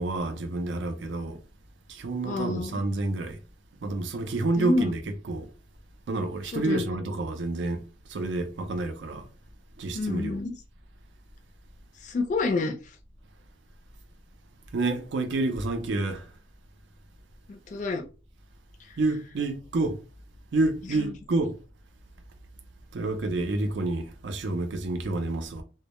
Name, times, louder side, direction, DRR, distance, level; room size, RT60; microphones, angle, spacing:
voice 1, 0.0-1.4 1.9-3.4 3.8-5.0 5.3-5.5 6.1-7.8 8.1-9.3 9.8-10.4 14.7-16.3 19.0-20.0 20.5-21.6 22.9-25.6, right 2 dB, 80° right, 0.5 m, -29 dB
voice 2, 2.2-2.8 4.6-4.9 6.5-6.9 9.9-10.5 12.0-12.8 17.5-18.1 18.8-19.0 20.9-21.1, left 3 dB, 40° left, 0.3 m, -28 dB
2.1 x 2.0 x 2.9 m
head